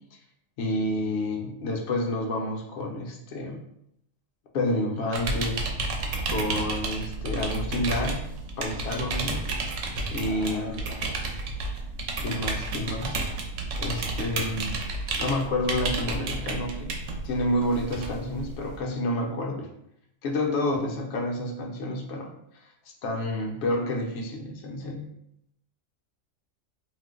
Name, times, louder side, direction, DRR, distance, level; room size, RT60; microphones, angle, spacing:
voice 1, 0.6-3.6 4.5-5.6 6.3-8.3 8.6-9.5 10.1-10.9 12.2-13.2 13.8-14.8 15.2-17.0 17.2-19.7 20.2-22.3 23.0-25.1, left 1 dB, 65° left, 1 dB, 0.8 m, -29 dB
sound 1, 5.1-18.8, right 3 dB, 75° right, 0.9 m, -31 dB
voice 2, 10.2-11.2, left 1 dB, 20° right, -4 dB, 0.7 m, -41 dB
2.4 x 2.0 x 3.6 m, 0.75 s
omnidirectional pair, 1.3 m